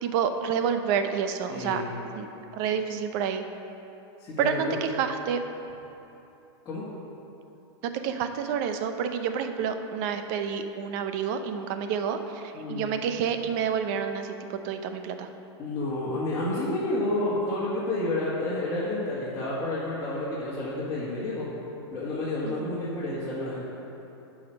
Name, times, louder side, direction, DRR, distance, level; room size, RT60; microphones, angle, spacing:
voice 1, 0.0-1.8 2.2-2.3 2.5-3.4 4.4-5.4 7.8-15.3 22.4-22.7, right 7 dB, 45° right, 7 dB, 0.7 m, -29 dB
voice 2, 1.5-1.9 4.2-4.8 6.7-6.8 12.5-12.9 15.6-21.5 21.9-23.6, left 2 dB, 20° left, -11 dB, 1.9 m, -30 dB
9.3 x 5.0 x 6.2 m, 2.9 s
supercardioid pair, 140°, 14 cm